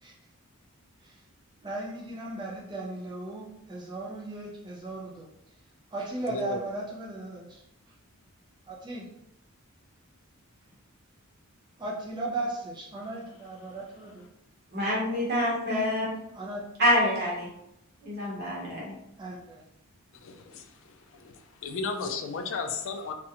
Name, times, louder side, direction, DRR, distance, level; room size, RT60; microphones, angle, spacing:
voice 1, 1.6-5.2 5.9-7.6 8.7-9.1 11.8-14.3 16.3-16.6 19.2-19.6, right 2 dB, 20° right, -3 dB, 0.3 m, -36 dB
voice 2, 6.3-6.6 20.2-20.7 21.1-21.3 21.6-23.1, left 4 dB, 60° left, 6 dB, 0.3 m, -33 dB
voice 3, 14.7-16.1 16.8-17.5 18.0-18.9, left 1 dB, 45° right, -5 dB, 0.8 m, -26 dB
2.4 x 2.1 x 2.8 m, 0.81 s
head